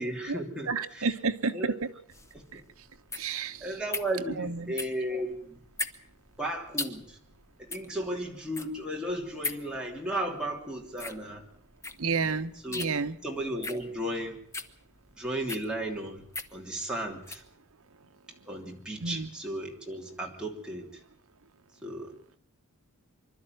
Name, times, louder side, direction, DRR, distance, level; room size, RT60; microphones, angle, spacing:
voice 1, 0.0-1.1 1.5-1.7 2.3-2.6 3.6-5.6 6.4-7.2 7.6-11.4 12.2-12.3 12.6-12.9 13.2-14.4 15.2-17.4 18.4-21.0 21.8-22.2, right 1 dB, 5° right, -1 dB, 3.0 m, -35 dB
voice 2, 0.7-1.7 2.5-2.6 3.1-3.7 4.4-4.7 12.0-13.2 19.0-19.3, right 4 dB, 70° right, 9 dB, 1.1 m, -30 dB
sound 1, 2.1-17.5, left 3 dB, 15° left, 0.9 m, -40 dB
25.0 x 12.0 x 9.2 m, 0.62 s
head